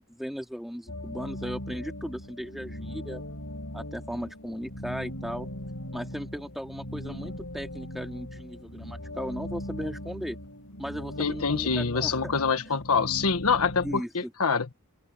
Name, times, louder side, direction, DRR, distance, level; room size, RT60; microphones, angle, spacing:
voice 1, 0.1-3.2 3.7-5.5 5.9-10.4 10.8-12.4 12.7-12.8 13.8-14.3, equal, ahead, 2.5 m, -37 dB
sound 1, 0.9-14.0, left 1 dB, 70° left, 5.0 m, -39 dB
voice 2, 11.2-14.7, left 5 dB, 85° left, 1.3 m, -26 dB
open air
head